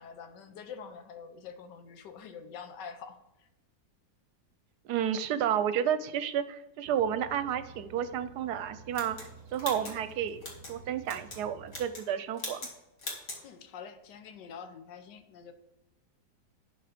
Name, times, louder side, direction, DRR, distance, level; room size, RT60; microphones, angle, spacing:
voice 1, 0.0-3.5 13.4-15.5, left 6 dB, 85° left, 8 dB, 1.5 m, -46 dB
voice 2, 4.9-9.2 9.5-10.4 10.7-12.6, right 9 dB, 75° right, 12 dB, 1.1 m, -31 dB
sound 1, 6.8-11.9, right 5 dB, 45° right, 1.0 m, -52 dB
sound 2, 8.9-10.7 11.1-11.4 11.7-12.1 12.4-12.7 13.0-13.4, left 2 dB, 55° left, 2.4 m, -41 dB
11.5 x 4.7 x 5.0 m, 0.92 s
omnidirectional pair, 1.8 m